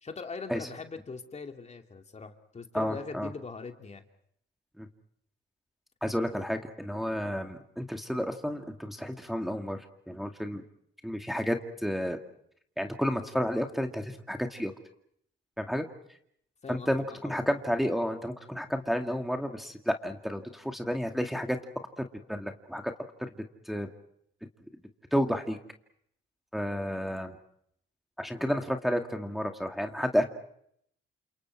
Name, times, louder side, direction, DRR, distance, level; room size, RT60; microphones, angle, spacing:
voice 1, 0.0-4.0 16.6-17.4, left 4 dB, 35° left, 5 dB, 2.6 m, -41 dB
voice 2, 2.7-3.3 4.8-4.9 6.0-10.6 11.0-12.2 12.8-14.7 15.6-15.9 16.7-21.6 22.0-22.9 23.2-23.3 23.7-23.9 25.1-25.6 26.5-27.4 28.2-30.2, equal, ahead, 4 dB, 2.3 m, -31 dB
30.0 x 27.5 x 4.7 m, 0.69 s
cardioid pair, 90°, 20 cm